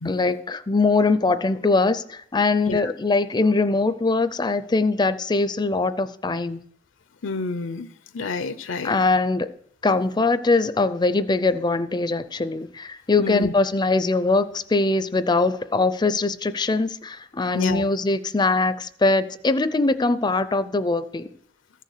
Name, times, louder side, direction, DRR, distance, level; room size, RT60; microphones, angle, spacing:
voice 1, 0.0-6.6 8.8-9.5 9.8-21.3, left 3 dB, 20° left, 13 dB, 0.5 m, -22 dB
voice 2, 7.2-7.9 8.1-8.9 13.2-13.5 17.5-17.9, left 3 dB, 75° left, 13 dB, 0.6 m, -29 dB
14.0 x 6.6 x 6.5 m, 0.66 s
head